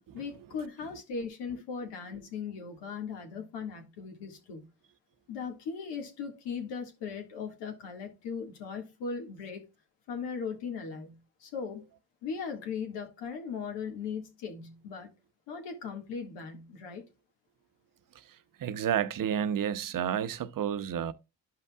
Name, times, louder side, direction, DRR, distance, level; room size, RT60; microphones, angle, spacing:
voice 1, 0.1-4.7 5.3-9.6 10.1-11.8 12.2-15.1 15.5-17.0, left 5 dB, 85° left, 1.9 m, -38 dB
voice 2, 18.1-21.1, right 9 dB, 50° right, 0.8 m, -31 dB
11.5 x 5.6 x 2.3 m
cardioid pair, 80°, 41 cm